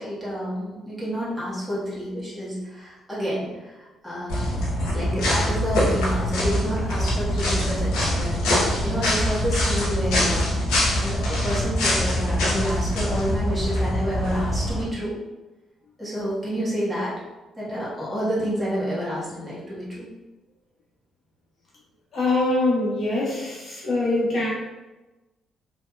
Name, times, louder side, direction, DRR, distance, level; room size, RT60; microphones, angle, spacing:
voice 1, 0.0-4.6 4.9-10.6 11.0-15.2 16.0-17.2 17.6-20.1, equal, ahead, -9 dB, 1.5 m, -29 dB
sound 1, 4.3-14.8, equal, 85° left, 0.9 m, -24 dB
voice 2, 22.1-24.5, left 2 dB, 60° left, -6 dB, 1.3 m, -23 dB
3.1 x 2.8 x 2.3 m, 1.1 s
supercardioid pair, 65°, 0 cm